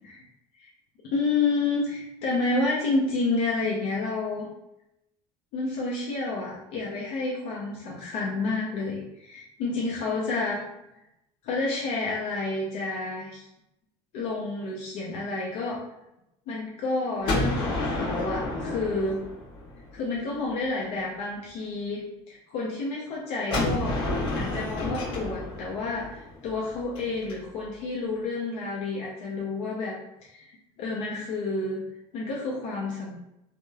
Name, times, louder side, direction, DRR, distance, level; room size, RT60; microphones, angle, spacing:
voice 1, 1.0-4.5 5.5-10.6 11.4-13.5 14.1-15.8 16.5-19.2 19.9-24.0 24.3-30.5 30.8-31.8 32.1-33.1, left 3 dB, 70° left, -4 dB, 0.6 m, -30 dB
Gunshot gunfire, 17.2-20.1 23.5-27.3, left 2 dB, 50° left, 1.1 m, -30 dB
2.9 x 2.0 x 2.3 m, 0.88 s
cardioid pair, 130°, 12 cm